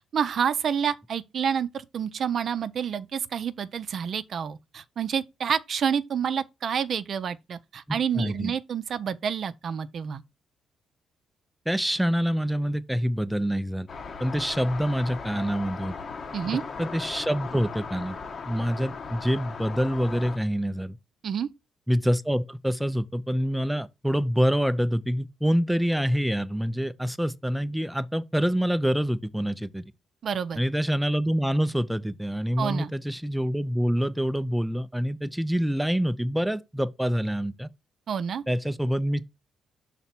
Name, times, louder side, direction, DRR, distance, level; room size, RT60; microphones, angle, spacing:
voice 1, 0.1-10.2 16.3-16.6 21.2-21.5 30.2-30.6 32.6-32.9 38.1-38.4, right 7 dB, 55° right, 0.5 m, -28 dB
voice 2, 7.9-8.5 11.7-13.9 14.2-15.9 16.8-18.2 18.5-21.0 21.9-29.8 30.6-37.7 38.5-39.3, equal, 5° right, 0.5 m, -26 dB
sound 1, 13.9-20.4, left 5 dB, 45° left, 1.1 m, -38 dB
5.6 x 4.1 x 4.4 m
cardioid pair, 90°, 0 cm